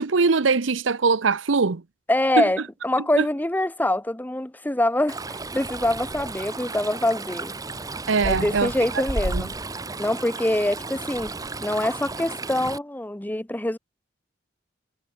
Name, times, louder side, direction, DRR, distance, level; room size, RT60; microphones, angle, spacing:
voice 1, 0.0-1.8 2.4-2.5 3.2-3.3 8.1-8.7 9.2-9.4, right 4 dB, 85° right, 0.8 m, -21 dB
voice 2, 2.1-7.5 8.2-9.5 10.0-11.3 11.6-13.8, left 1 dB, 10° left, 0.7 m, -24 dB
Stream, 5.1-12.8, right 2 dB, 20° right, 1.1 m, -33 dB
head